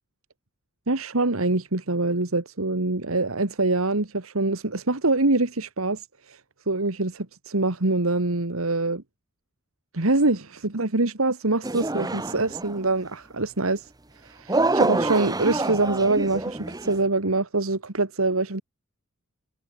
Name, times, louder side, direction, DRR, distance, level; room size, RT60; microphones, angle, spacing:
voice 1, 0.9-6.4 6.7-9.0 9.9-13.9 14.2-18.6, right 2 dB, 85° right, 2.0 m, -24 dB
sound 1, 11.6-12.9 14.5-17.0, right 2 dB, 20° right, 1.2 m, -26 dB
head